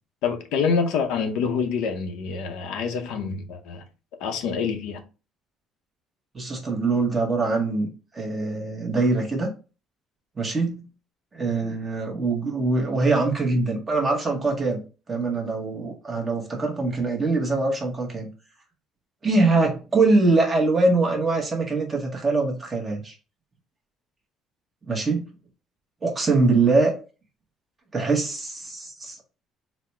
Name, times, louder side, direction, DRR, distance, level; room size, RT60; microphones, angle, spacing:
voice 1, 0.2-3.8 4.2-5.0, left 5 dB, 85° left, 0.7 m, -26 dB
voice 2, 6.3-7.9 8.1-9.5 10.4-10.8 11.3-14.8 15.1-18.3 19.2-23.1 24.9-25.2 26.0-26.9 27.9-29.3, right 3 dB, 20° right, 0.8 m, -23 dB
4.1 x 2.0 x 4.3 m
cardioid pair, 165°, 0 cm